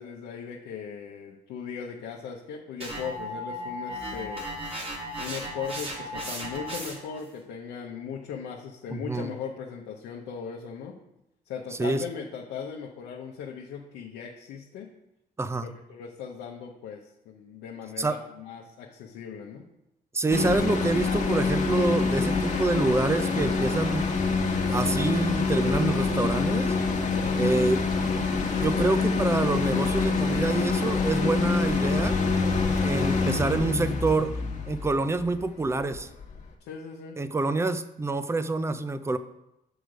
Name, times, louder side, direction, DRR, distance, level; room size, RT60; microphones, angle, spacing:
voice 1, 0.0-4.5 5.2-11.0 11.5-14.9 15.6-19.6 24.8-25.0 27.1-27.4 36.6-37.2, left 7 dB, 85° left, -1 dB, 0.8 m, -38 dB
sound 1, 2.8-7.2, equal, 35° right, 2.1 m, -35 dB
voice 2, 8.9-9.3 11.8-12.0 15.4-15.7 18.0-18.2 20.1-24.1 24.7-26.7 27.4-28.2 28.6-32.2 32.8-34.3 34.7-36.1 37.2-39.2, right 3 dB, 15° right, 12 dB, 0.5 m, -27 dB
sound 2, 20.3-36.5, left 4 dB, 45° left, 1.3 m, -26 dB
6.4 x 4.9 x 5.0 m, 0.86 s
cardioid pair, 80°, 18 cm